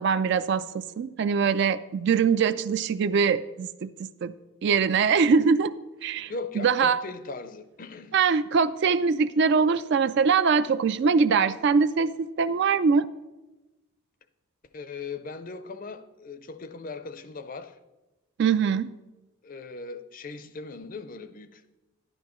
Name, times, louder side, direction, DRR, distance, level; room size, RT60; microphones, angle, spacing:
voice 1, 0.0-4.3 4.6-5.7 6.0-7.0 8.1-13.1 18.4-18.9, right 5 dB, 50° right, 0.3 m, -23 dB
voice 2, 6.3-8.2 14.7-17.8 19.4-21.6, left 4 dB, 40° left, 0.5 m, -38 dB
11.5 x 11.0 x 3.1 m
head